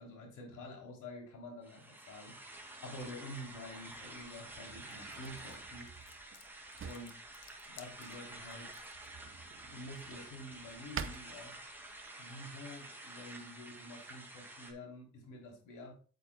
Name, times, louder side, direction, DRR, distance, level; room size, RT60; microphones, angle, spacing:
voice 1, 0.0-2.4 2.8-5.9 6.8-7.2 7.7-8.7 9.3-11.6 12.2-15.9, left 1 dB, 80° left, 1 dB, 3.2 m, -48 dB
sound 1, 1.6-14.7, right 2 dB, 5° right, 2.2 m, -50 dB
Drawer open or close, 3.4-12.1, right 7 dB, 45° right, 0.8 m, -50 dB
sound 2, 4.9-9.1, left 8 dB, 60° left, 1.1 m, -59 dB
8.5 x 8.4 x 2.2 m, 0.39 s
cardioid pair, 90°, 30 cm